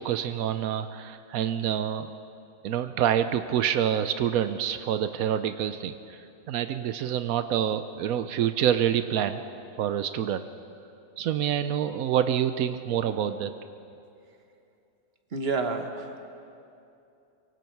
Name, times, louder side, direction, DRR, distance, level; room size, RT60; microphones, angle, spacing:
voice 1, 0.0-2.1 2.6-6.2 6.5-9.4 9.8-10.4 11.2-13.5, right 9 dB, 90° right, 10 dB, 1.1 m, -27 dB
voice 2, 15.3-16.3, right 3 dB, 45° right, 5 dB, 1.6 m, -30 dB
24.0 x 23.5 x 4.6 m, 2.7 s
omnidirectional pair, 1.4 m